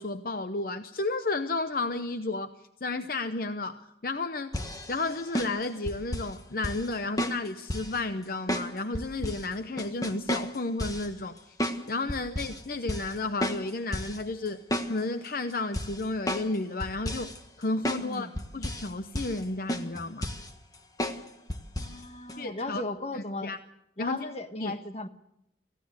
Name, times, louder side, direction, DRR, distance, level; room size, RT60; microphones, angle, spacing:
voice 1, 0.0-4.5 4.9-11.6 11.9-17.3 17.6-20.3 22.4-22.8 23.1-23.6 24.0-24.3 24.6-24.7, left 2 dB, 50° left, 10 dB, 0.8 m, -32 dB
sound 1, 4.5-6.3 6.6-6.9 7.2-8.0 8.5-9.4 9.8-11.1 11.6-11.8 12.1-12.6 12.9-13.1 13.4-14.2 14.5-15.3 15.7-16.6 16.8-17.4 17.8-18.1 18.4-18.9 19.2-19.4 19.7-20.5 21.0-21.2 21.5-22.0 22.3-22.4, equal, 20° left, 1.5 m, -32 dB
voice 2, 18.0-18.4 21.8-23.5 24.0-25.1, left 2 dB, 35° left, 8 dB, 1.4 m, -36 dB
25.0 x 16.0 x 8.1 m, 0.80 s
head